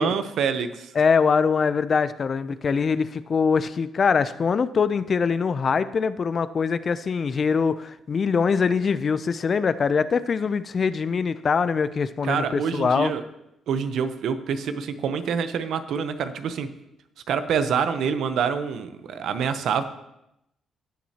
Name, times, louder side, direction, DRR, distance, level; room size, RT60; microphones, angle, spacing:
voice 1, 0.0-0.9 12.2-13.2 13.7-16.7 17.3-19.8, right 6 dB, 75° right, 10 dB, 0.8 m, -26 dB
voice 2, 1.0-13.1, left 5 dB, 45° left, 15 dB, 0.4 m, -23 dB
16.5 x 7.3 x 2.9 m, 0.83 s
cardioid pair, 90°, 0 cm